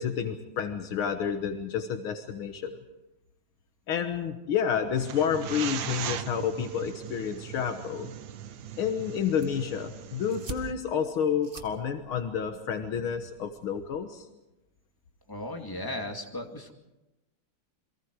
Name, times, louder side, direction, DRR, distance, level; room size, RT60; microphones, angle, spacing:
voice 1, 0.0-2.8 3.9-8.1 8.8-14.3, left 7 dB, 80° left, 6 dB, 2.1 m, -30 dB
sound 1, 5.0-10.7, right 10 dB, 65° right, 1.6 m, -39 dB
sound 2, 9.2-14.2, right 3 dB, 30° right, 1.4 m, -47 dB
voice 2, 15.3-16.7, left 1 dB, 10° left, 2 dB, 2.2 m, -36 dB
29.5 x 22.5 x 4.8 m, 0.97 s
omnidirectional pair, 2.3 m